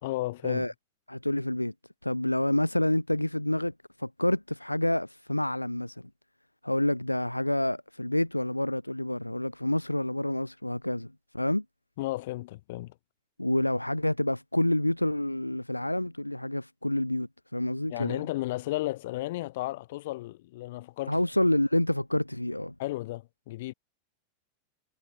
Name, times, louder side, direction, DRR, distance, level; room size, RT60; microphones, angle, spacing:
voice 1, 0.0-0.7 12.0-12.9 17.9-21.2 22.8-23.7, left 18 dB, 55° left, 1.0 m, -33 dB
voice 2, 1.1-1.7 2.0-3.7 4.0-6.1 6.6-11.6 13.4-18.2 21.1-22.7, left 1 dB, 85° left, 0.4 m, -28 dB
figure-of-eight pair, 90°, 0 cm